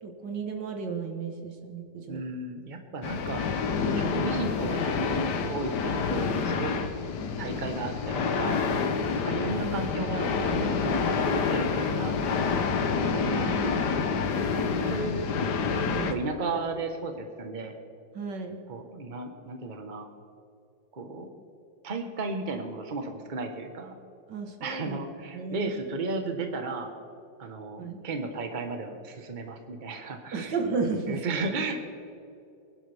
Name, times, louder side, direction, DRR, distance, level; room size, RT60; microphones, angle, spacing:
voice 1, 0.0-2.2 14.8-15.1 15.7-16.1 18.1-18.6 24.3-25.0 25.3-25.7 27.8-28.0 30.3-31.2, right 4 dB, 85° right, 3 dB, 2.1 m, -33 dB
voice 2, 2.1-3.5 4.0-6.8 7.4-8.7 9.1-12.3 13.1-13.9 14.8-15.3 16.0-17.7 18.7-20.1 20.9-21.3 21.8-23.9 24.6-26.9 27.4-30.5 31.1-31.8, right 3 dB, 30° right, 4 dB, 1.3 m, -34 dB
sound 1, 3.0-16.1, left 5 dB, 75° left, 1.6 m, -28 dB
24.5 x 11.0 x 3.5 m, 2.6 s
omnidirectional pair, 1.8 m